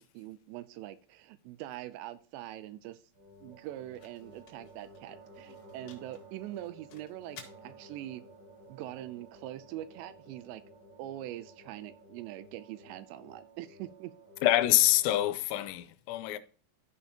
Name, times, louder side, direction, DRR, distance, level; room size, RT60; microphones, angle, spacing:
voice 1, 0.0-3.0 3.4-8.2 8.7-10.6 11.0-14.1, right 14 dB, 85° right, 2.7 m, -43 dB
sound 1, 2.4-10.5, left 6 dB, 55° left, 2.6 m, -59 dB
sound 2, 3.1-15.4, right 1 dB, 70° right, 6.6 m, -54 dB
voice 2, 14.4-16.4, left 15 dB, 85° left, 3.0 m, -26 dB
13.5 x 5.5 x 2.8 m
omnidirectional pair, 5.2 m